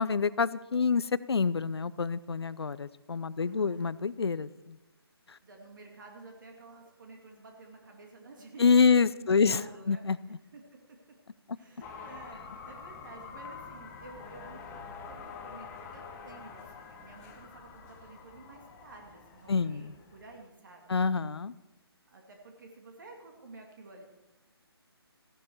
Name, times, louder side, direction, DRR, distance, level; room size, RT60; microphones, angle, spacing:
voice 1, 0.0-4.8 5.3-5.4 8.6-9.6 9.9-10.2 19.5-19.9 20.9-21.5, left 5 dB, 75° left, 18 dB, 0.6 m, -27 dB
voice 2, 3.4-3.9 5.4-8.7 9.1-10.6 11.6-14.8 15.0-20.9 22.1-24.0, right 3 dB, 50° right, 2 dB, 2.3 m, -51 dB
sound 1, 11.8-20.4, left 5 dB, 15° left, 1.1 m, -47 dB
15.0 x 11.5 x 4.6 m, 1.0 s
figure-of-eight pair, 150°, 14 cm